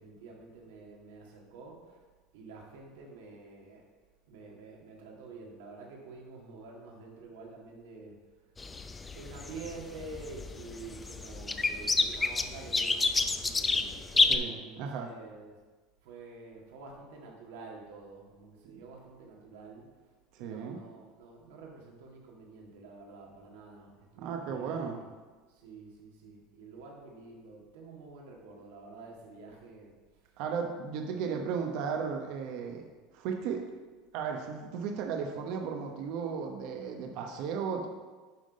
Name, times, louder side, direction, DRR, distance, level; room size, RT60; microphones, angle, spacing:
voice 1, 0.0-2.0 2.3-3.9 4.3-8.2 9.1-15.6 16.0-19.9 20.4-25.1 25.5-29.9 30.4-30.5, right 3 dB, 80° right, -1 dB, 1.8 m, -48 dB
sound 1, 8.6-14.4, left 3 dB, 20° left, 0.5 m, -29 dB
voice 2, 14.3-15.1 20.3-20.8 24.2-25.0 30.4-32.9 33.1-33.7 34.1-37.9, right 6 dB, 65° right, 2 dB, 0.9 m, -35 dB
10.5 x 3.8 x 5.2 m, 1.3 s
supercardioid pair, 105°, 0 cm